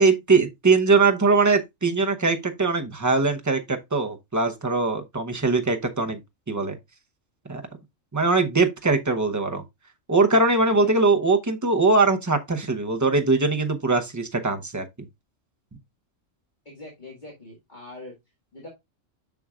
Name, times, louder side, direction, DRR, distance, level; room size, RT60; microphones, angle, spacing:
voice 1, 0.0-6.2 6.5-6.8 7.5-7.6 8.1-9.6 10.1-14.8, right 3 dB, 20° right, 0.6 m, -21 dB
voice 2, 16.7-18.1 18.5-18.7, left 2 dB, 35° left, 2.1 m, -42 dB
7.0 x 6.1 x 2.3 m
omnidirectional pair, 1.3 m